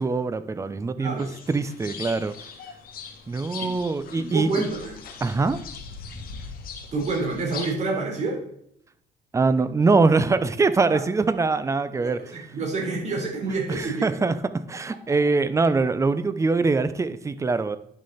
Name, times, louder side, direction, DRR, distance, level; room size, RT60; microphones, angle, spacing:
voice 1, 0.0-2.3 3.3-4.5 5.2-5.6 9.3-12.4 13.7-17.8, right 3 dB, 15° right, 13 dB, 0.6 m, -23 dB
sound 1, 1.2-7.7, left 5 dB, 60° left, 1.8 m, -40 dB
voice 2, 4.2-5.0 6.9-8.4 10.9-11.0 12.0-14.3 15.1-15.2, right 3 dB, 40° right, -2 dB, 3.9 m, -28 dB
10.5 x 6.4 x 4.2 m, 0.71 s
cardioid pair, 110°, 17 cm